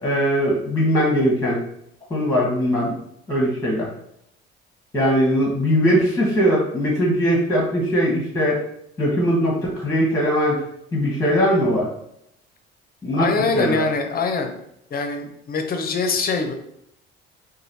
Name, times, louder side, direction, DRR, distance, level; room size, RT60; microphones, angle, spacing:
voice 1, 0.0-1.6 2.1-2.9 3.3-3.9 4.9-8.6 9.0-10.6 10.9-11.9 13.0-13.3 13.5-13.8, equal, 10° left, -3 dB, 0.9 m, -20 dB
voice 2, 13.1-14.6 14.9-16.5, left 4 dB, 30° left, 5 dB, 0.5 m, -23 dB
3.1 x 2.3 x 2.7 m, 0.76 s
figure-of-eight pair, 50°, 31 cm